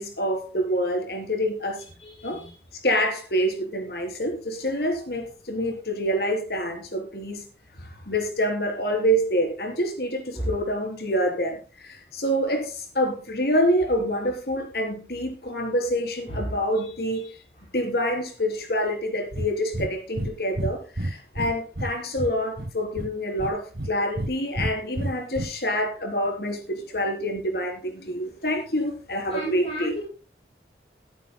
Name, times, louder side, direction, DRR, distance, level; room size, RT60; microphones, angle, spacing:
voice 1, 0.0-1.8 2.2-2.4 2.7-7.4 7.8-17.4 17.7-29.9, equal, 60° left, 3 dB, 3.7 m, -27 dB
voice 2, 2.0-2.5 10.3-10.5 16.3-16.6 29.3-30.1, equal, 30° left, -5 dB, 6.7 m, -32 dB
Breathing, 19.3-19.5 19.7-19.9 20.2-20.3 20.6-21.9 22.2-23.1 23.4-24.3 24.6-25.5, right 1 dB, 55° right, 1.0 m, -29 dB
21.5 x 9.6 x 2.2 m, 0.34 s
head